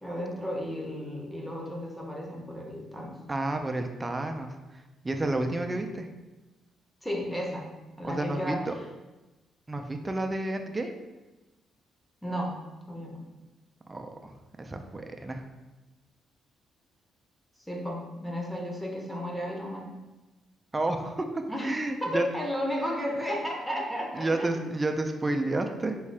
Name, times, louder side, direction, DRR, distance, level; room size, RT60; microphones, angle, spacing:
voice 1, 0.0-3.1 7.0-7.7 8.0-8.6 12.2-12.5 12.9-13.2 17.7-19.9 21.5-21.7 22.0-24.7, equal, 5° left, -1 dB, 0.7 m, -33 dB
voice 2, 3.3-6.1 8.0-8.7 9.7-11.0 13.9-15.5 20.7-22.2 24.1-26.0, right 2 dB, 20° right, 5 dB, 0.3 m, -31 dB
3.6 x 2.3 x 3.2 m, 1.1 s
cardioid pair, 90°, 0 cm